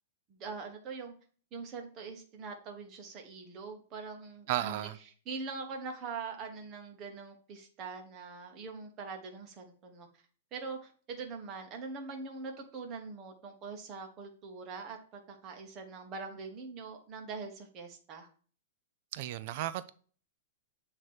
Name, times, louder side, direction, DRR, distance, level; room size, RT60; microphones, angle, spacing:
voice 1, 0.3-1.1 1.5-4.9 5.2-10.1 10.5-18.3, right 4 dB, 25° right, 1.1 m, -43 dB
voice 2, 4.5-5.0 19.1-19.9, right 13 dB, 45° right, 0.4 m, -34 dB
8.0 x 2.9 x 4.7 m
hypercardioid pair, 160°, 0 cm